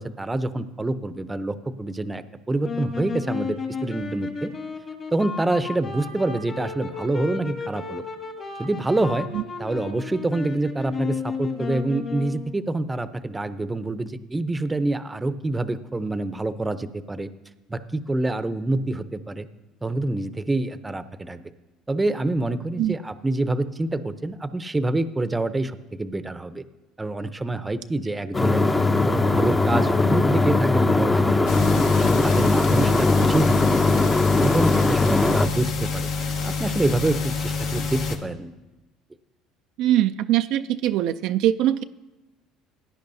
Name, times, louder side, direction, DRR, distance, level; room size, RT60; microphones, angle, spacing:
voice 1, 0.0-4.5 5.1-8.0 8.6-9.3 9.6-17.3 17.7-19.5 19.8-21.4 21.9-26.6 27.0-28.7 29.1-34.0 34.4-36.1 36.4-38.5, right 2 dB, 15° right, 12 dB, 0.6 m, -26 dB
sound 1, 2.6-12.6, left 4 dB, 45° left, 1.9 m, -33 dB
sound 2, 28.3-35.5, left 3 dB, 20° left, 0.7 m, -20 dB
sound 3, 31.5-38.2, left 4 dB, 70° left, 1.3 m, -28 dB
voice 2, 39.8-41.8, right 12 dB, 70° right, 9 dB, 0.3 m, -22 dB
17.0 x 10.0 x 2.7 m, 1.1 s
supercardioid pair, 80°, 0 cm